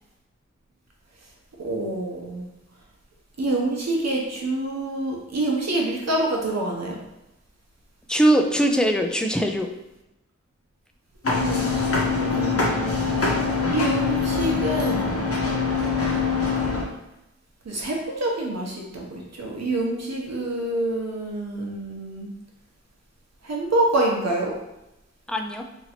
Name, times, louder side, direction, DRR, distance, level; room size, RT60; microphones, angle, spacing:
voice 1, 1.6-2.5 3.4-7.0 11.4-12.9 13.7-15.3 17.7-22.3 23.4-24.5, right 2 dB, 60° right, -1 dB, 0.9 m, -27 dB
voice 2, 8.1-9.7 25.3-25.7, right 1 dB, 5° left, 3 dB, 0.4 m, -21 dB
sound 1, 11.2-16.8, left 4 dB, 50° left, 0.8 m, -23 dB
2.9 x 2.7 x 4.3 m, 0.91 s
wide cardioid pair, 70°, 29 cm